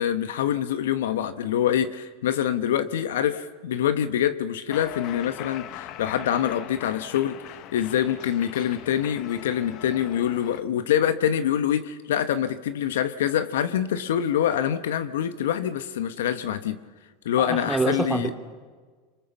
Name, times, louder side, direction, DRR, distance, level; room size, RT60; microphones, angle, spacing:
voice 1, 0.0-7.4 7.7-16.8 17.2-18.3, left 10 dB, 80° left, 11 dB, 1.1 m, -25 dB
Cheering, 4.7-10.6, left 12 dB, 55° left, 1.1 m, -40 dB
voice 2, 17.4-18.3, right 3 dB, 10° right, 5 dB, 2.9 m, -26 dB
25.5 x 23.5 x 7.2 m, 1.4 s
hypercardioid pair, 95°, 0 cm